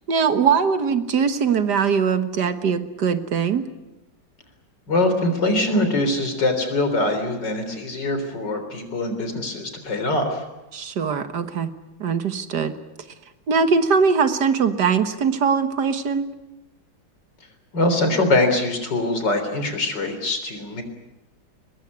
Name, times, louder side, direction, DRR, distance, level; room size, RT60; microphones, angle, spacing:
voice 1, 0.1-3.6 10.7-11.7 12.0-12.8 13.5-16.3, right 6 dB, 65° right, 10 dB, 1.9 m, -21 dB
voice 2, 4.9-10.4 17.7-20.8, left 2 dB, 70° left, 7 dB, 4.3 m, -23 dB
23.5 x 20.5 x 9.6 m, 0.99 s
omnidirectional pair, 2.0 m